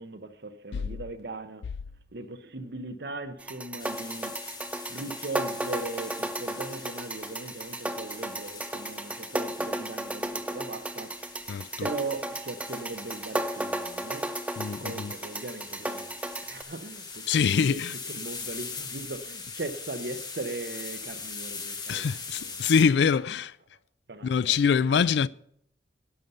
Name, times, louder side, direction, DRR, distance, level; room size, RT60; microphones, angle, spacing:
voice 1, 0.0-1.7 2.1-4.4 4.9-14.3 14.8-17.8 18.1-22.8 24.1-24.6, right 3 dB, 65° right, 0.8 m, -39 dB
sound 1, 3.4-16.6, right 1 dB, 5° right, 0.4 m, -34 dB
sound 2, 3.8-22.8, left 4 dB, 25° left, 1.1 m, -42 dB
voice 2, 11.5-11.9 14.6-15.1 17.3-18.0 21.9-23.5 24.2-25.3, left 6 dB, 75° left, 0.3 m, -24 dB
11.5 x 5.5 x 7.9 m
head